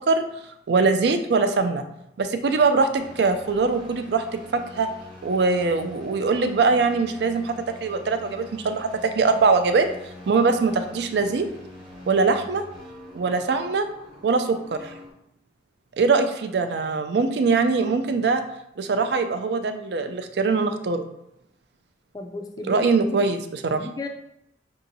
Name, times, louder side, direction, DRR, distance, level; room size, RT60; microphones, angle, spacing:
voice 1, 0.7-1.8 2.2-4.2 4.7-4.9 5.2-7.5 7.8-9.9 10.3-11.5 12.1-12.6 13.1-13.9 14.2-14.9 16.0-18.4 18.8-21.0 22.7-23.8, right 4 dB, 65° right, 8 dB, 0.4 m, -22 dB
sound 1, 3.0-15.1, left 1 dB, 25° right, 0.9 m, -45 dB
voice 2, 22.1-23.2 23.7-24.1, left 2 dB, 20° left, 4 dB, 0.3 m, -35 dB
5.6 x 2.8 x 2.6 m, 0.80 s
head